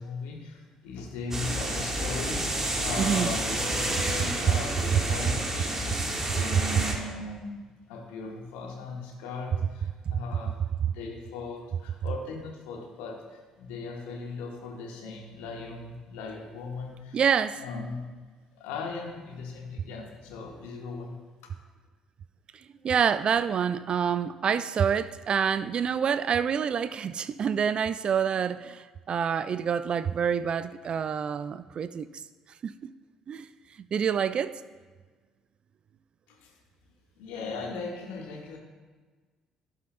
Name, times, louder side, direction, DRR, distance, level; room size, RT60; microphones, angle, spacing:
voice 1, 0.0-5.7 6.3-17.2 17.6-18.0 18.6-21.1 36.3-36.6 37.2-38.6, left 4 dB, 65° left, 0 dB, 1.5 m, -38 dB
sound 1, 1.3-6.9, right 1 dB, 20° right, 1.5 m, -30 dB
voice 2, 3.0-3.3 17.1-17.6 22.8-32.1 32.6-32.9 33.3-33.5 33.9-34.6, right 7 dB, 40° right, 15 dB, 0.3 m, -27 dB
16.0 x 5.5 x 2.2 m, 1.4 s
figure-of-eight pair, 50°, 2 cm